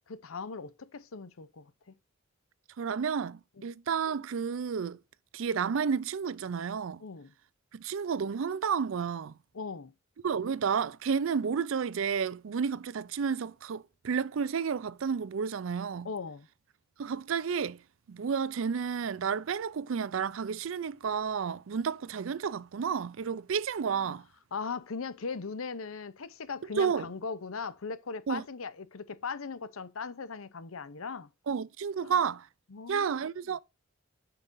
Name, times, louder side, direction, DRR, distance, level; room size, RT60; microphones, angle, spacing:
voice 1, 0.1-1.9 7.0-7.3 9.5-9.9 16.0-16.5 24.0-24.2 24.5-31.3 32.0-32.1 32.7-33.1, left 5 dB, 90° left, 0.7 m, -39 dB
voice 2, 2.8-5.0 5.3-7.0 7.7-9.3 10.2-16.1 17.0-17.8 18.1-24.3 26.8-27.1 28.3-28.4 31.5-32.5 32.9-33.6, right 6 dB, 70° right, 0.4 m, -31 dB
9.0 x 5.7 x 2.6 m
head